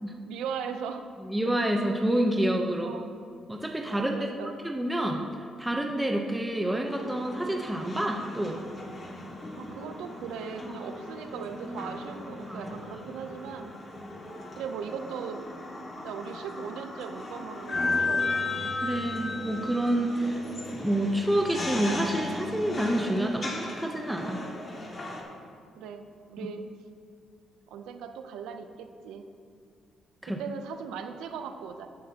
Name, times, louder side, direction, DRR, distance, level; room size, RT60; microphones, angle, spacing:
voice 1, 0.3-1.1 2.8-3.1 3.9-4.6 9.6-13.7 14.6-15.5 16.0-18.5 25.8-26.7 27.7-29.3 30.3-31.9, right 6 dB, 90° right, 7 dB, 0.6 m, -38 dB
voice 2, 1.3-2.9 3.5-4.2 4.6-5.2 5.6-8.6 10.6-10.7 12.5-12.6 18.8-20.4 20.7-24.4 30.2-30.4, right 1 dB, 10° right, 2 dB, 0.7 m, -28 dB
sound 1, 6.9-25.2, left 2 dB, 35° left, 1.9 m, -36 dB
14.5 x 7.5 x 2.9 m, 2.4 s
cardioid pair, 90°, 0 cm